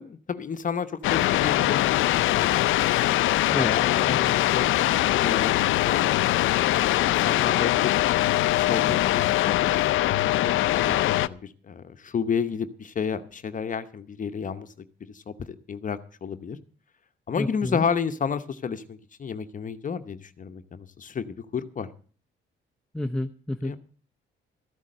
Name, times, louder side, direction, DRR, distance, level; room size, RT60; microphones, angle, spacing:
voice 1, 0.0-2.6 3.2-5.5 5.8-6.0 7.0-7.9 8.5-14.7 15.1-15.3 15.7-16.6 17.3-21.3 21.5-21.9 23.6-23.8, left 6 dB, 40° left, 10 dB, 0.9 m, -31 dB
sound 1, 1.0-11.3, left 15 dB, 80° left, 0.5 m, -22 dB
voice 2, 17.4-17.8 22.9-23.8, left 1 dB, 5° left, 7 dB, 0.7 m, -29 dB
13.5 x 8.1 x 7.7 m, 0.42 s
cardioid pair, 90°, 20 cm